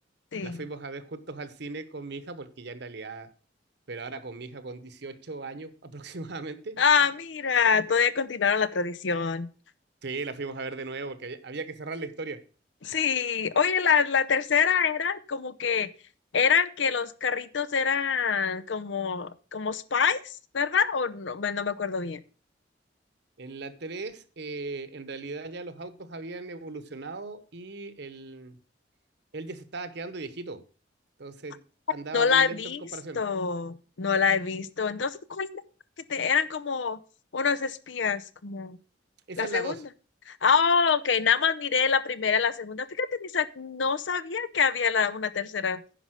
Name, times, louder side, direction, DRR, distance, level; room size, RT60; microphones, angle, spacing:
voice 1, 0.4-3.3 3.9-6.8 10.0-12.4 23.4-28.6 29.3-30.6 31.2-31.6 31.9-32.6 32.9-33.2 39.3-39.8, right 3 dB, 65° right, 12 dB, 1.0 m, -38 dB
voice 2, 6.8-9.5 12.8-15.9 16.3-22.2 32.1-32.8 33.2-35.5 36.1-37.0 37.3-38.8 39.4-39.7 40.3-45.8, left 6 dB, 80° left, 15 dB, 0.6 m, -26 dB
10.0 x 5.4 x 6.3 m, 0.39 s
head